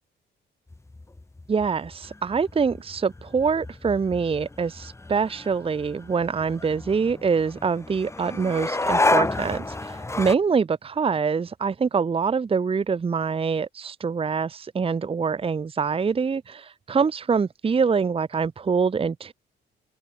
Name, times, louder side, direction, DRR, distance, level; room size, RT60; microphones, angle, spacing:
sound 1, 0.7-10.3, left 2 dB, 15° left, 1.5 m, -30 dB
voice 1, 1.5-19.3, right 5 dB, 30° right, 0.8 m, -25 dB
open air
cardioid pair, 90°, 20 cm